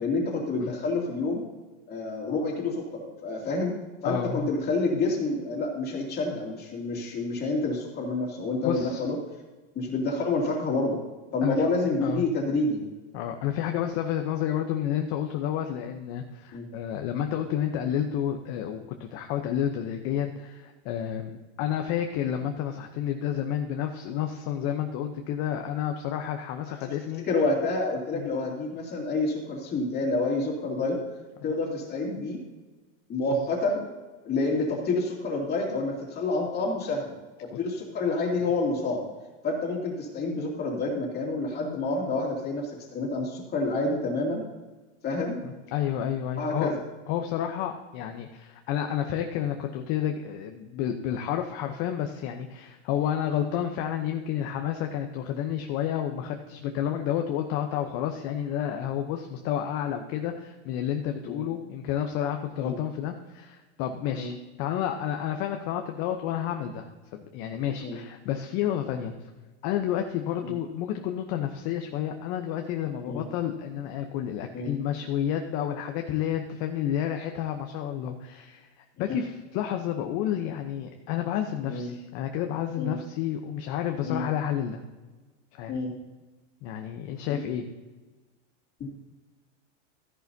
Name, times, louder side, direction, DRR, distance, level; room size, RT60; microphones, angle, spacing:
voice 1, 0.0-1.4 1.9-3.7 4.0-9.2 9.7-11.0 11.3-12.8 16.5-16.7 26.8-27.0 27.3-31.0 31.4-32.4 33.1-33.8 34.2-37.1 37.4-39.0 39.4-44.4 45.0-45.4 46.4-46.8 61.2-61.4 62.6-62.8 64.2-64.3 67.8-68.0 70.4-70.5 73.1-73.2 74.5-74.7 79.1-79.2 81.7-81.9 82.8-83.0 84.0-84.2 85.7-85.9 88.8-88.9, left 3 dB, 25° left, -1 dB, 2.7 m, -28 dB
voice 2, 4.0-4.5 8.6-9.1 11.4-11.7 12.0-12.2 13.1-27.3 28.1-28.3 31.4-31.5 37.5-37.6 45.4-46.8 47.1-69.1 69.6-84.8 85.5-85.7 86.6-87.6, left 10 dB, 40° left, 4 dB, 0.8 m, -30 dB
13.5 x 10.5 x 2.8 m, 1.2 s
supercardioid pair, 145°, 37 cm